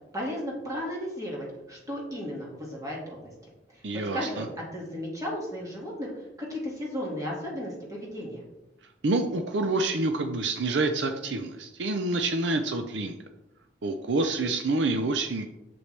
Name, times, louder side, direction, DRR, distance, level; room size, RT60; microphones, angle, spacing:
voice 1, 0.1-3.3 3.7-3.8 4.1-8.4, equal, 20° right, -3 dB, 2.0 m, -35 dB
voice 2, 3.8-4.5 9.0-13.2 13.8-15.4, right 2 dB, 70° right, 6 dB, 0.6 m, -27 dB
8.0 x 7.0 x 3.3 m, 0.93 s
head